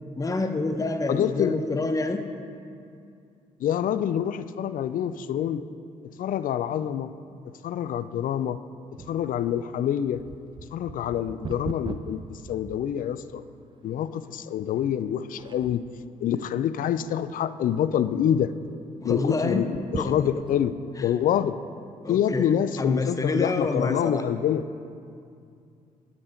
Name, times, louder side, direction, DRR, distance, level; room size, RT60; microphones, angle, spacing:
voice 1, 0.2-2.2 19.0-19.7 20.0-20.3 21.0-21.1 22.0-24.3, left 3 dB, 20° left, 7 dB, 0.7 m, -27 dB
voice 2, 1.1-1.6 3.6-5.6 6.2-7.1 7.6-8.6 9.1-10.2 10.7-13.4 13.8-15.8 16.2-18.5 19.0-20.7 21.0-21.6 22.1-24.6, left 10 dB, 55° left, 14 dB, 0.4 m, -26 dB
sound 1, 9.0-13.4 14.0-14.1 14.8-15.1 15.4-16.0 16.6-17.3 17.6-17.7 18.0-18.1 19.6-20.7 21.3-21.4, right 4 dB, 30° right, 0.5 m, -40 dB
9.6 x 7.4 x 4.4 m, 2.4 s
hypercardioid pair, 45°, 17 cm